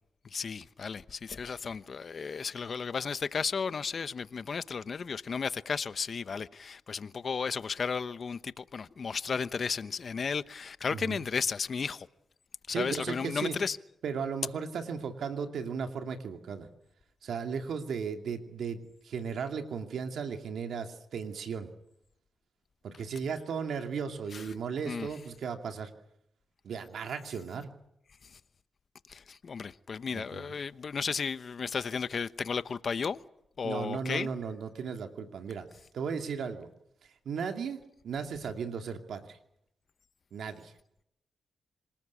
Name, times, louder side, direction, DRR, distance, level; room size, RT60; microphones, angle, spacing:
voice 1, 0.2-12.1 12.7-13.8 24.3-24.4 24.9-25.1 29.1-33.2 33.6-34.3, left 5 dB, 55° left, 1.0 m, -34 dB
voice 2, 10.9-11.2 12.7-13.6 14.0-16.7 17.2-21.7 22.8-25.9 26.6-27.7 30.1-30.5 33.6-35.7 35.9-36.7 37.2-39.4 40.3-40.7, right 6 dB, 75° right, 2.5 m, -36 dB
26.5 x 19.5 x 8.4 m
cardioid pair, 65°, 0 cm